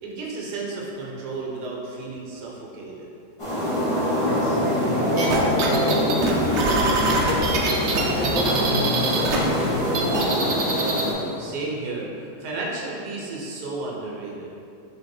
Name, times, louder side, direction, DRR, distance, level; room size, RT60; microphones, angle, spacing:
voice 1, 0.0-3.1 11.4-14.5, right 3 dB, 70° right, -3 dB, 1.4 m, -33 dB
sound 1, 3.4-11.1, left 1 dB, 30° left, 0.6 m, -24 dB
voice 2, 4.2-7.5 8.1-10.7, equal, 90° left, -12 dB, 1.7 m, -30 dB
sound 2, 5.2-9.4 9.7-11.1, right 3 dB, 85° right, 0.6 m, -24 dB
sound 3, 6.2-11.7, left 2 dB, 60° left, 1.1 m, -32 dB
3.8 x 3.2 x 4.3 m, 2.6 s
omnidirectional pair, 1.9 m